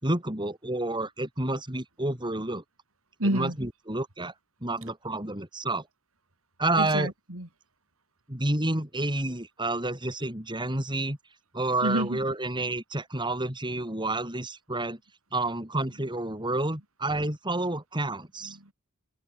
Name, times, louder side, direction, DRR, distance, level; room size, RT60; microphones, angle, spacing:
voice 1, 0.0-2.6 3.2-4.3 4.6-5.9 6.6-7.1 8.3-11.2 11.5-15.0 15.3-18.6, right 2 dB, 20° right, 5.0 m, -29 dB
voice 2, 3.2-3.6 6.8-7.5 11.8-12.2 18.4-18.7, right 1 dB, 80° right, 4.5 m, -29 dB
head